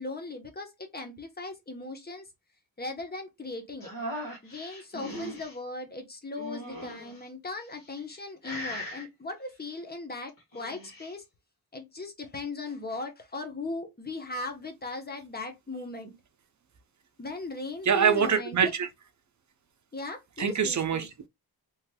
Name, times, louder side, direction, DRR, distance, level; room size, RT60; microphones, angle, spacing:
voice 1, 0.0-2.3 2.8-3.9 4.4-11.2 11.7-16.1 17.2-18.6 19.9-21.1, left 3 dB, 25° left, 0.9 m, -38 dB
sound 1, 3.8-5.6 6.4-7.2 7.9-8.2 8.4-9.1 10.4-11.1, equal, 55° left, 1.7 m, -39 dB
voice 2, 17.8-18.9 20.4-21.3, right 7 dB, 45° right, 0.6 m, -25 dB
3.2 x 3.1 x 2.2 m
wide cardioid pair, 105°, 39 cm